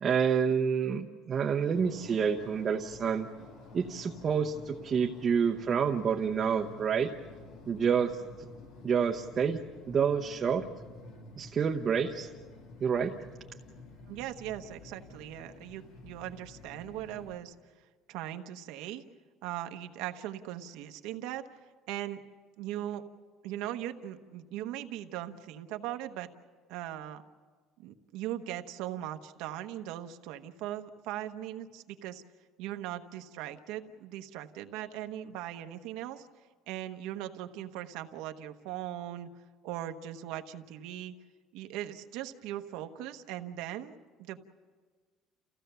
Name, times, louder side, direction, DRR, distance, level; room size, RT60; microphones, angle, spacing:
voice 1, 0.0-3.3 3.7-7.1 7.7-8.2 8.8-9.6 9.9-10.7 11.4-12.3 12.8-13.1, right 6 dB, 30° right, 2 dB, 0.8 m, -28 dB
sound 1, 1.7-17.4, left 3 dB, 75° left, 2.7 m, -50 dB
voice 2, 14.1-17.5 18.1-19.0 19.4-21.4 21.9-22.2 22.6-23.0 23.4-26.3 26.7-27.2 27.8-32.2 32.6-36.3 36.7-39.3 39.6-41.1 41.5-44.4, right 12 dB, 80° right, 7 dB, 1.1 m, -39 dB
29.0 x 16.0 x 6.9 m, 1.5 s
cardioid pair, 160°, 0 cm